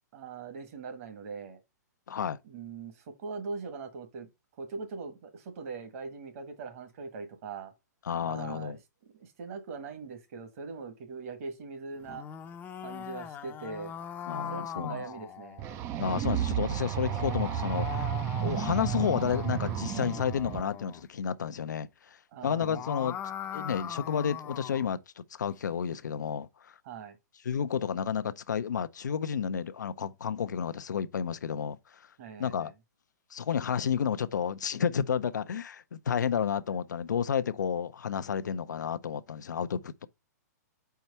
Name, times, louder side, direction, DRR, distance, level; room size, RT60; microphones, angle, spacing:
voice 1, 0.1-1.6 2.4-4.3 4.6-7.7 8.2-12.3 12.8-13.9 14.5-15.6 18.5-18.7 22.3-22.8 26.8-27.2 32.2-32.7, right 4 dB, 50° right, 1.6 m, -41 dB
voice 2, 2.1-2.4 8.1-8.8 14.3-15.0 16.0-18.1 18.4-21.9 22.4-23.2 23.5-26.7 27.5-31.8 32.4-32.7 33.3-40.1, left 7 dB, 85° left, 0.5 m, -31 dB
sound 1, 12.0-15.8 16.8-21.0 22.5-25.0, left 9 dB, 20° left, 0.6 m, -40 dB
sound 2, 15.6-20.6, right 12 dB, 25° right, 0.4 m, -32 dB
4.7 x 4.3 x 5.4 m
hypercardioid pair, 135°, 10 cm